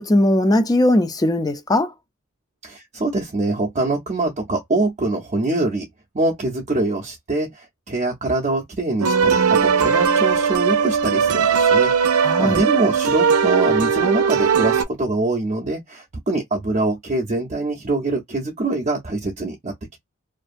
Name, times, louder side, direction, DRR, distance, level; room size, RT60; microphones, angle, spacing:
voice 1, 0.0-1.9 12.2-12.6, left 1 dB, 15° left, 0.4 m, -19 dB
voice 2, 2.6-5.9 6.1-20.0, right 2 dB, 30° right, 0.5 m, -24 dB
sound 1, 9.0-14.8, right 6 dB, 85° right, 0.5 m, -18 dB
2.5 x 2.2 x 2.4 m
head